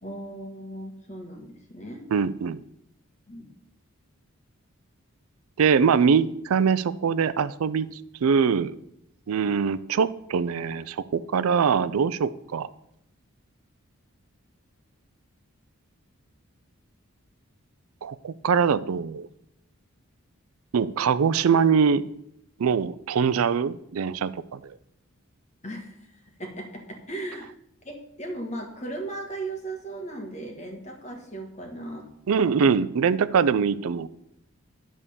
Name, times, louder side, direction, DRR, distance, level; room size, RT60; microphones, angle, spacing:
voice 1, 0.0-2.1 3.3-3.5 25.6-27.5 27.8-32.1 32.4-32.7, right 2 dB, 30° left, 4 dB, 1.4 m, -37 dB
voice 2, 2.1-2.6 5.6-7.9 8.2-8.7 9.3-12.7 18.0-19.3 20.7-22.1 22.6-24.7 32.3-34.1, right 6 dB, 80° right, 15 dB, 0.4 m, -23 dB
10.5 x 3.6 x 6.9 m, 0.75 s
head